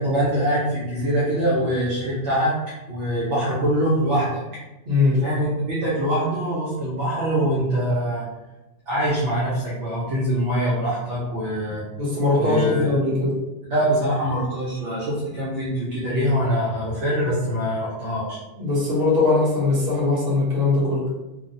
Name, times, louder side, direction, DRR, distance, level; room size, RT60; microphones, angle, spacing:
voice 1, 0.0-2.6 2.9-4.4 5.2-8.2 8.9-11.8 12.4-12.9 13.7-18.4, equal, 75° right, -8 dB, 1.1 m, -23 dB
voice 2, 4.9-5.2 12.0-13.3 18.6-21.1, left 3 dB, 55° right, -7 dB, 1.3 m, -20 dB
3.1 x 2.1 x 2.6 m, 1.0 s
omnidirectional pair, 1.2 m